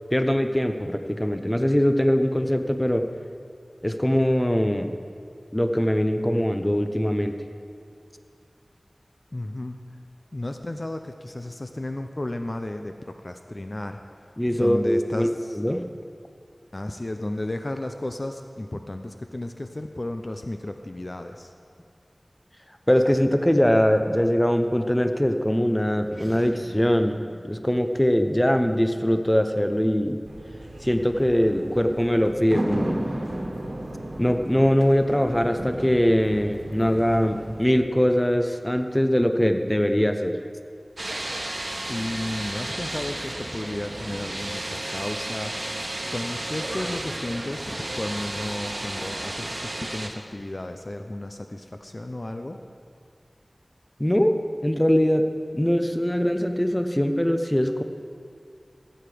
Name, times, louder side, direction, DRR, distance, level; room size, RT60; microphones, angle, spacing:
voice 1, 0.1-3.1 3.8-4.9 5.5-7.4 14.4-15.8 22.9-30.2 30.8-33.0 34.2-40.4 54.0-55.3 55.5-57.8, equal, 15° left, 7 dB, 0.7 m, -22 dB
voice 2, 9.3-9.9 10.3-15.6 16.7-21.5 41.9-45.7 46.1-52.6, left 1 dB, 50° left, 6 dB, 0.5 m, -33 dB
sound 1, 25.9-30.7, equal, 30° right, 1.7 m, -47 dB
sound 2, 30.3-37.7, right 1 dB, 90° right, 1.4 m, -34 dB
sound 3, 41.0-50.1, right 1 dB, 60° right, 1.1 m, -33 dB
15.5 x 7.9 x 5.0 m, 2.4 s
wide cardioid pair, 50°, 0 cm